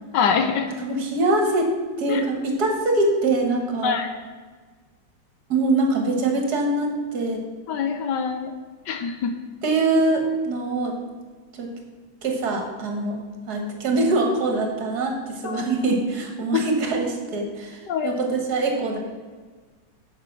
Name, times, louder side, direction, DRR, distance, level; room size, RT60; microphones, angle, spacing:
voice 1, 0.1-0.7 2.1-2.2 3.8-4.1 7.7-8.5 8.9-9.3 9.9-10.2 15.4-15.6 16.5-16.6 17.9-18.1, left 7 dB, 70° left, 7 dB, 1.2 m, -24 dB
voice 2, 0.8-3.9 5.5-7.4 9.6-11.0 11.5-11.7 12.2-13.2 13.5-19.0, right 3 dB, 55° right, 2 dB, 1.9 m, -23 dB
8.5 x 5.9 x 6.0 m, 1.4 s
omnidirectional pair, 2.1 m